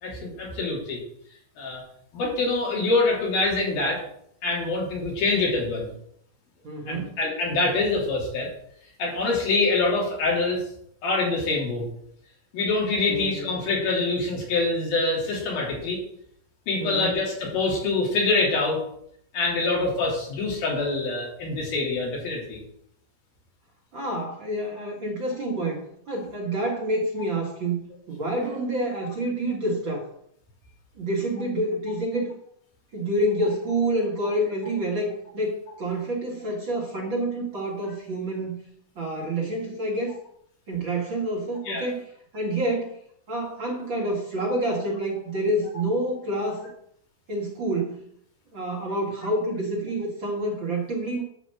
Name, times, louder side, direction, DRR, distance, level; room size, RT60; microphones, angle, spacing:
voice 1, 0.0-1.0 1.6-1.8 2.1-4.0 4.4-5.9 6.9-8.5 9.0-10.6 11.0-11.9 12.5-16.0 16.7-18.8 19.3-22.6 41.7-41.9, left 3 dB, 85° left, -3 dB, 5.1 m, -25 dB
voice 2, 6.6-7.2 13.1-13.5 16.8-17.1 23.9-30.1 31.0-32.4 32.9-38.6 39.0-40.1 40.7-42.1 42.3-43.0 43.3-46.7 47.3-48.0 48.5-51.2, right 1 dB, 45° right, -2 dB, 1.8 m, -28 dB
9.9 x 5.1 x 7.7 m, 0.70 s
omnidirectional pair, 4.1 m